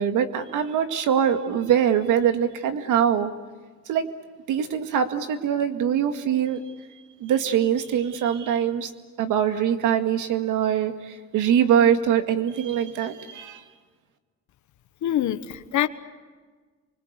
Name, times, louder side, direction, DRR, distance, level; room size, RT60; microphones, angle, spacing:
voice 1, 0.0-3.3 3.9-4.1 4.5-6.6 7.2-8.9 9.2-13.6, right 9 dB, 85° right, 2.1 m, -23 dB
voice 2, 15.0-15.9, left 12 dB, 75° left, 1.3 m, -24 dB
29.0 x 25.0 x 8.2 m
cardioid pair, 90°, 30 cm